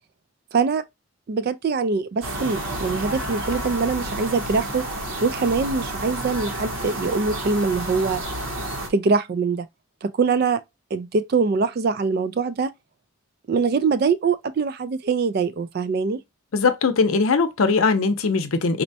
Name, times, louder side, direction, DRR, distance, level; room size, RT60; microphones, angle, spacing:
voice 1, 0.5-0.8 1.3-4.8 5.2-8.2 8.9-9.7 10.0-10.6 10.9-12.7 13.5-16.2, right 4 dB, 45° right, 0.3 m, -23 dB
sound 1, 2.2-8.9, right 1 dB, 65° right, 1.0 m, -30 dB
voice 2, 16.5-18.8, left 4 dB, 80° left, 0.6 m, -20 dB
4.1 x 2.2 x 2.6 m
head